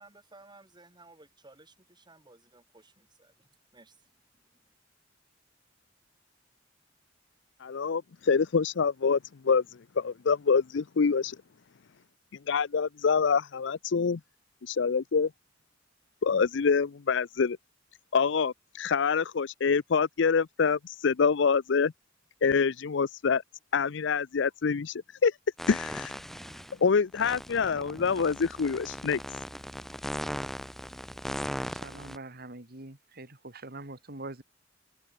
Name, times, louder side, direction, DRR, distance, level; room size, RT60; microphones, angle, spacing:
voice 1, 0.0-4.0, right 2 dB, 25° right, 7.3 m, -56 dB
voice 2, 7.6-11.4 12.5-14.2 14.6-15.3 16.2-17.6 18.1-21.9 22.4-23.4 23.7-25.4 25.7-26.2 26.8-29.2, left 5 dB, 70° left, 0.5 m, -26 dB
sound 1, 25.6-26.7 27.1-32.2, equal, ahead, 4.2 m, -38 dB
voice 3, 31.7-34.4, right 2 dB, 55° right, 2.8 m, -44 dB
head